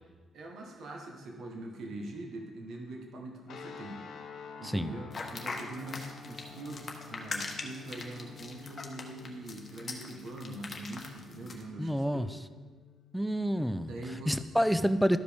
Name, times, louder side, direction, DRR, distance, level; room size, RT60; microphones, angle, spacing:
voice 1, 0.3-4.0 4.6-12.3 13.6-14.5, right 2 dB, 65° right, 1 dB, 1.1 m, -43 dB
sound 1, 3.5-13.8, left 7 dB, 65° left, 0.6 m, -50 dB
voice 2, 4.6-4.9 11.8-12.3 13.1-13.9 14.3-15.2, equal, ahead, 12 dB, 0.4 m, -28 dB
sound 2, 5.1-11.6, left 3 dB, 35° left, 1.1 m, -41 dB
13.0 x 4.9 x 3.5 m, 1.4 s
cardioid pair, 90°, 0 cm